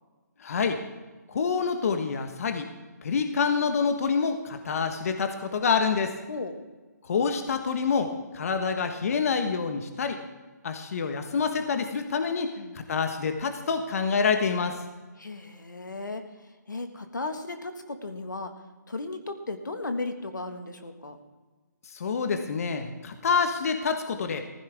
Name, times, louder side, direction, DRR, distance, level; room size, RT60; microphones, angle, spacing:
voice 1, 0.4-0.8 1.3-2.7 3.0-6.2 7.0-10.2 10.6-14.8 21.9-24.4, left 5 dB, 55° left, 7 dB, 1.3 m, -27 dB
voice 2, 15.2-16.2 16.7-18.5 18.9-21.2, left 3 dB, 85° left, 7 dB, 1.6 m, -35 dB
16.0 x 15.0 x 3.5 m, 1.3 s
figure-of-eight pair, 145°, 10 cm